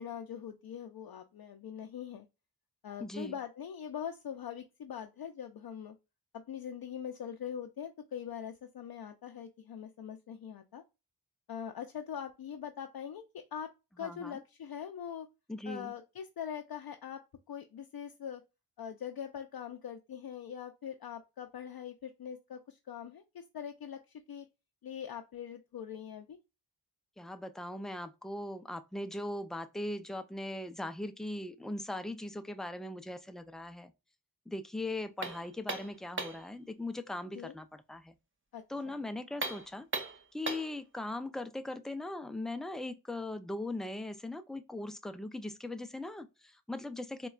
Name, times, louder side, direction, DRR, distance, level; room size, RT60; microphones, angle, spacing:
voice 1, 0.0-2.3 2.8-6.0 6.5-10.8 11.5-13.7 14.0-15.3 15.7-17.2 17.5-18.4 18.8-24.5 24.8-26.4 37.3-37.5 38.5-39.0, left 8 dB, 65° left, 0.5 m, -42 dB
voice 2, 3.0-3.4 14.0-14.4 15.5-15.9 27.2-33.9 34.5-38.2 38.7-39.9 40.3-47.3, left 2 dB, ahead, 0.3 m, -39 dB
sound 1, 35.2-36.5 39.3-40.8, right 3 dB, 30° right, 0.8 m, -38 dB
4.1 x 2.2 x 2.3 m
cardioid pair, 55°, 40 cm